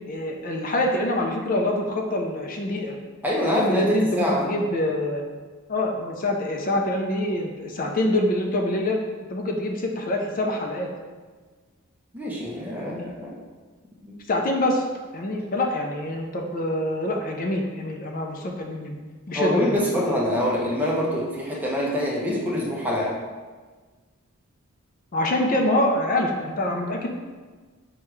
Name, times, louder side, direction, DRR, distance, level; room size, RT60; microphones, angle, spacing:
voice 1, 0.1-3.0 3.4-5.2 5.7-9.0 9.3-10.9 12.8-13.1 14.3-14.9 15.1-19.0 19.3-20.1 25.1-27.1, left 1 dB, 40° left, 2 dB, 0.4 m, -25 dB
voice 2, 3.2-4.5 12.1-13.4 14.0-14.2 19.3-23.2, equal, 10° right, -4 dB, 0.6 m, -25 dB
6.3 x 2.3 x 3.1 m, 1.4 s
head